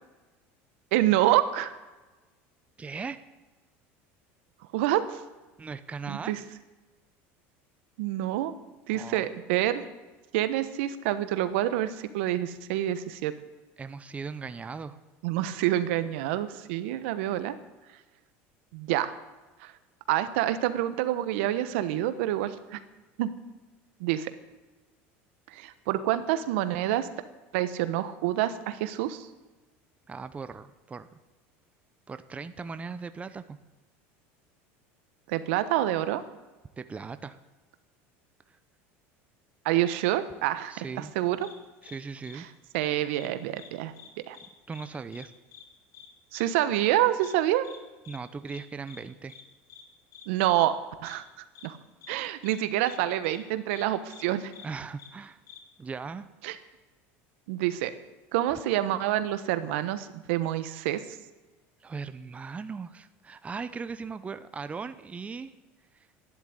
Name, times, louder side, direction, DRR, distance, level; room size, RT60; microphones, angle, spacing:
voice 1, 0.9-1.7 4.7-5.2 6.1-6.4 8.0-8.5 8.9-9.9 10.3-13.3 15.2-17.5 18.7-19.1 19.6-19.7 20.1-22.8 23.2-23.3 24.0-24.3 25.5-27.1 27.5-29.3 35.3-36.2 39.6-41.5 42.3-42.4 42.7-43.9 44.3-44.4 46.3-47.7 50.3-50.7 51.0-51.8 52.1-54.5 56.4-56.6 57.5-57.9 58.3-61.0, right 13 dB, 80° right, 12 dB, 1.2 m, -27 dB
voice 2, 2.8-3.2 5.6-6.4 8.9-9.3 13.8-15.0 30.1-31.1 32.1-33.6 36.8-37.4 40.7-41.1 41.8-42.5 44.7-45.3 48.1-49.4 54.6-55.4 55.8-56.3 61.8-65.5, right 5 dB, 20° right, 11 dB, 0.8 m, -38 dB
sound 1, 41.4-41.5 41.8-42.0 42.2-42.4 42.7-43.3 43.5-43.7 43.9-44.5 44.7-44.9 45.1-45.3 45.5-45.6 45.9-46.1 46.3-46.5 46.7-46.9 47.2-47.3 47.6-47.8 48.0-48.2 48.5-48.6 48.9-49.0 49.3-49.4 49.7-49.8 50.1-50.2 50.5-50.7 51.0-51.2 51.5-51.7 52.0-52.1 52.4-52.6 52.8-53.0 53.2-53.4 53.7-53.8 54.1-54.2 54.5-54.7 55.0-55.1 55.5-55.6, left 8 dB, 60° left, 2.7 m, -49 dB
12.0 x 10.5 x 9.8 m, 1.2 s
supercardioid pair, 110°, 7 cm